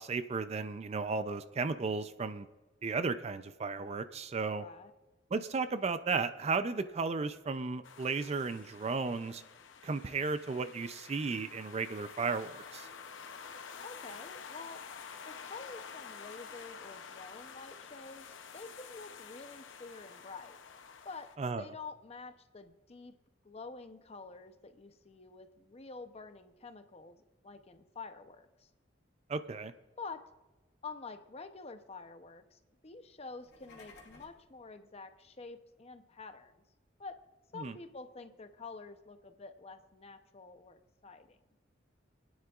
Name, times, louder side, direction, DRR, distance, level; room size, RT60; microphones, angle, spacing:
voice 1, 0.0-2.5 2.8-4.6 5.3-9.4 9.8-12.9 21.4-21.6 29.3-29.7 37.6-37.8, right 4 dB, 35° right, 11 dB, 0.4 m, -34 dB
voice 2, 4.6-4.9 13.8-14.8 15.3-20.6 21.0-21.3 21.6-23.2 23.4-28.7 30.0-30.2 30.8-36.5 37.0-37.2 37.5-41.4, left 4 dB, 35° left, 9 dB, 0.7 m, -48 dB
sound 1, 7.8-21.4, left 6 dB, 85° left, 0.7 m, -49 dB
sound 2, 33.3-34.5, left 3 dB, 60° left, 2.3 m, -56 dB
28.5 x 9.5 x 2.4 m, 1.1 s
head